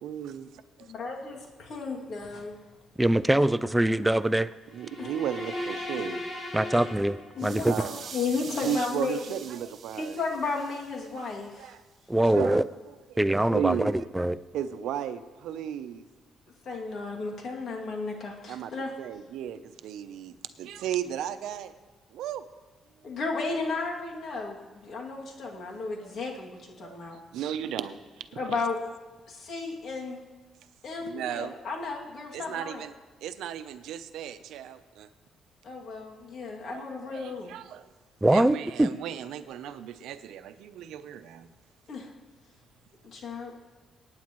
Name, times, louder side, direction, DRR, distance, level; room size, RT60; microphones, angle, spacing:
voice 1, 0.0-0.5 0.8-0.9 4.7-6.2 7.6-8.0 8.6-10.2 11.6-11.8 12.2-12.6 13.1-13.2 13.5-13.9 14.5-16.0 18.5-18.7 19.0-21.7 22.1-22.4 26.0-26.1 26.8-28.3 31.0-31.5 32.3-32.9 33.2-35.1 36.7-37.9 38.3-41.5, right 10 dB, 85° right, 10 dB, 0.7 m, -35 dB
voice 2, 0.9-2.6 5.0-5.1 7.3-9.2 9.9-11.7 16.6-18.9 23.0-27.2 28.4-28.8 29.3-30.2 30.8-32.8 35.6-37.5 41.9-42.1 43.0-43.6, left 4 dB, 60° left, -1 dB, 2.4 m, -34 dB
voice 3, 3.0-4.5 6.5-7.9 12.1-12.6 13.2-14.4 38.2-38.9, right 1 dB, 10° right, 13 dB, 0.4 m, -23 dB
sound 1, 4.7-7.7, left 1 dB, 30° left, 3.4 m, -37 dB
sound 2, 7.4-11.4, right 6 dB, 60° right, 1.7 m, -45 dB
23.0 x 9.5 x 3.1 m, 1.2 s
cardioid pair, 90°, 0 cm